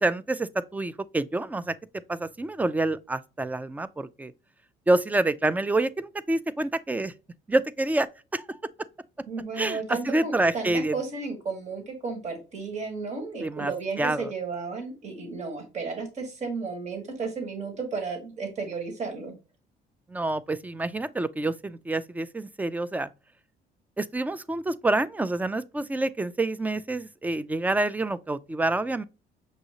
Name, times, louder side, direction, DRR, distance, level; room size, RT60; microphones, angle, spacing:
voice 1, 0.0-1.8 2.1-4.3 4.9-7.1 7.5-8.1 8.3-8.6 9.6-10.9 13.4-13.7 14.0-14.3 20.1-23.1 24.0-29.0, right 2 dB, 10° right, 0.3 m, -27 dB
voice 2, 9.3-19.3, right 4 dB, 40° right, 1.6 m, -33 dB
6.3 x 2.6 x 2.9 m
cardioid pair, 110°, 17 cm